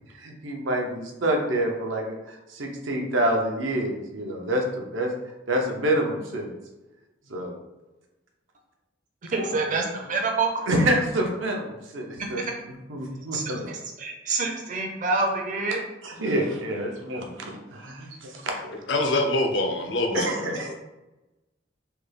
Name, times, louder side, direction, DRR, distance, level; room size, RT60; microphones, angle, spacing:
voice 1, 0.2-5.1 5.5-6.5 7.3-7.5 9.7-9.8 10.7-12.5 12.9-13.7 16.0-18.5 20.1-20.7, right 1 dB, 85° right, 1 dB, 0.6 m, -27 dB
voice 2, 9.3-10.5 13.3-15.8, right 3 dB, 40° right, 2 dB, 0.5 m, -27 dB
voice 3, 18.9-20.7, left 2 dB, 70° left, 4 dB, 0.5 m, -25 dB
3.3 x 2.3 x 3.2 m, 1.0 s
head